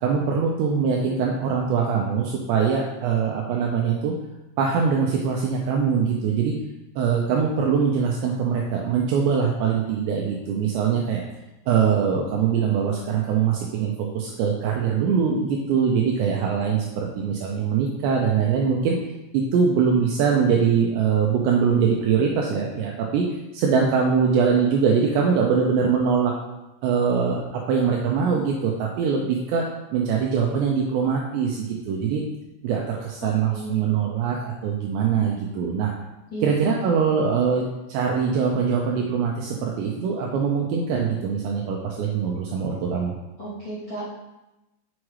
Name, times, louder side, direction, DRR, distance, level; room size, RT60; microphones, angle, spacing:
voice 1, 0.0-4.1 4.6-6.5 7.0-11.2 11.7-19.0 19.3-23.3 23.5-26.3 26.8-29.7 29.9-32.2 32.6-35.9 36.4-37.6 37.9-43.1, right 6 dB, 85° right, -1 dB, 2.6 m, -22 dB
voice 2, 33.2-34.0 36.3-36.5 43.4-44.0, right 1 dB, 35° left, -12 dB, 2.2 m, -34 dB
7.2 x 6.2 x 3.2 m, 0.97 s
omnidirectional pair, 5.6 m